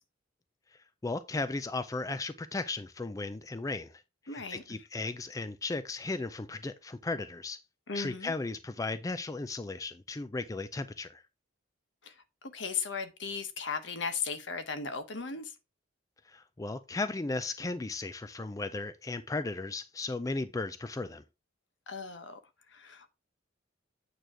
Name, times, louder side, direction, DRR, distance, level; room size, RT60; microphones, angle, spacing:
voice 1, 1.0-4.0 4.3-7.6 7.9-11.2 16.3-21.2, left 3 dB, 20° left, 0.4 m, -36 dB
voice 2, 4.3-4.6 7.9-8.3 12.0-12.1 12.5-15.5 21.9-22.4 22.7-23.1, left 5 dB, 65° left, 1.2 m, -36 dB
9.0 x 3.1 x 6.1 m
head